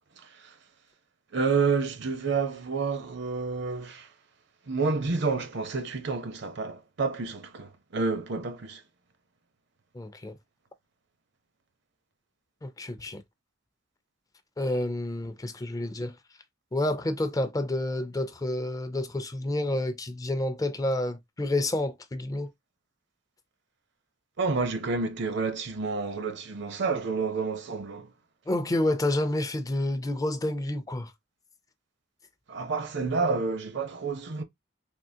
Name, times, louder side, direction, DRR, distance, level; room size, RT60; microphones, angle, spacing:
voice 1, 1.3-4.1 4.7-8.8 24.4-28.1 32.5-34.4, right 4 dB, 65° right, 0.7 m, -29 dB
voice 2, 9.9-10.3 12.6-13.2 14.6-16.1 16.7-22.5 28.5-31.1, left 1 dB, 20° left, 0.4 m, -29 dB
3.6 x 2.7 x 2.7 m
head